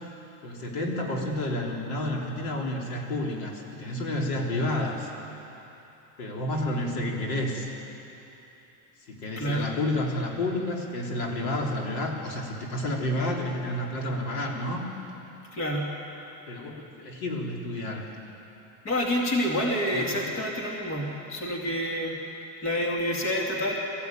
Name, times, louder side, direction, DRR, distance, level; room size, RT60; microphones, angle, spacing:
voice 1, 0.4-5.1 6.2-7.7 9.1-14.9 16.5-18.1 19.9-20.3, left 1 dB, 75° left, 0 dB, 3.6 m, -30 dB
voice 2, 6.5-7.1 9.4-9.7 15.5-15.9 18.8-22.2 22.6-23.8, equal, 30° left, -1 dB, 2.3 m, -28 dB
21.5 x 14.5 x 9.2 m, 3.0 s
cardioid pair, 175°, 44 cm